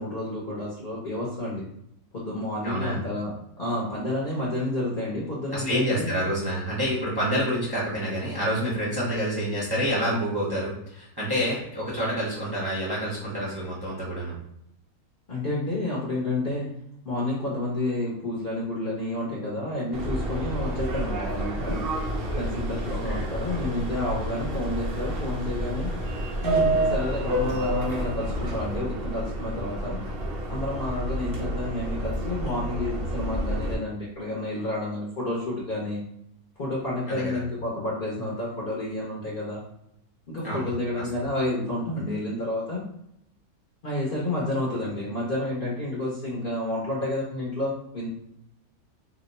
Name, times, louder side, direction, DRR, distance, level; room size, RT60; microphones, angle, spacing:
voice 1, 0.0-1.6 2.1-6.1 15.3-16.7 17.0-21.8 22.4-25.9 26.4-30.0 30.5-36.0 36.6-39.6 40.3-42.8 43.8-48.1, left 1 dB, 45° left, -6 dB, 0.7 m, -30 dB
voice 2, 2.6-3.0 5.5-14.3 22.9-23.3 37.1-37.4 40.4-40.7, equal, 20° right, -6 dB, 0.7 m, -28 dB
Subway metro underground, 19.9-33.7, right 1 dB, 60° right, 0.6 m, -29 dB
2.8 x 2.1 x 4.0 m, 0.75 s
omnidirectional pair, 1.6 m